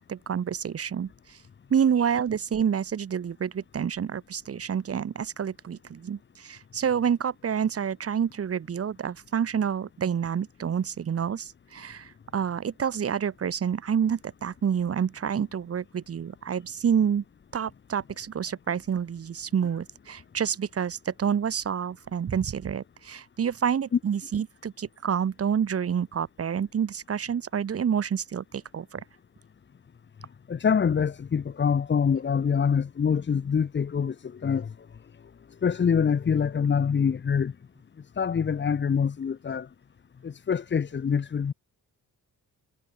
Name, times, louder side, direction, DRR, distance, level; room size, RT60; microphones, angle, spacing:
voice 1, 0.0-1.4 1.7-17.2 17.5-29.0, right 8 dB, 40° right, 1.4 m, -28 dB
voice 2, 30.5-34.7 35.6-37.5 38.2-39.7 40.2-41.5, left 6 dB, 30° left, 1.0 m, -25 dB
wide cardioid pair, 165°, 36 cm